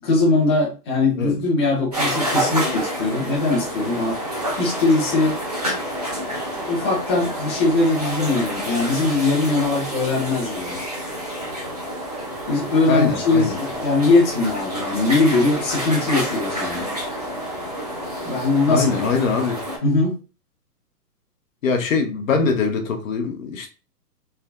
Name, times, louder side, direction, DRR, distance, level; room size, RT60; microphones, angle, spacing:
voice 1, 0.0-4.2 4.6-5.4 6.5-10.8 12.5-16.9 18.2-18.9 19.8-20.1, left 3 dB, 15° left, 0.6 m, -20 dB
sound 1, 1.9-19.8, right 1 dB, 30° right, 0.4 m, -28 dB
voice 2, 12.9-13.6 18.7-19.6 21.6-23.7, left 5 dB, 55° left, 0.7 m, -22 dB
3.3 x 2.4 x 2.2 m
hypercardioid pair, 150°, 49 cm